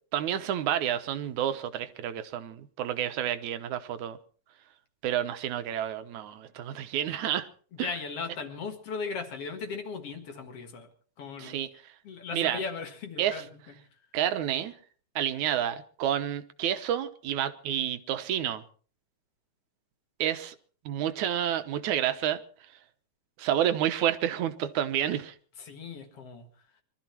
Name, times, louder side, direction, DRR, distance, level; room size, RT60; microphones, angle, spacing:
voice 1, 0.1-4.2 5.0-7.5 7.8-7.9 11.4-11.7 12.3-12.6 13.2-13.4 14.1-14.7 15.2-18.6 20.2-20.6 20.9-22.4 23.4-25.3, right 10 dB, 85° right, 2.4 m, -29 dB
voice 2, 7.7-10.9 11.2-11.6 12.0-13.7 25.7-26.5, left 5 dB, 55° left, 2.7 m, -37 dB
23.0 x 13.0 x 4.5 m
omnidirectional pair, 3.4 m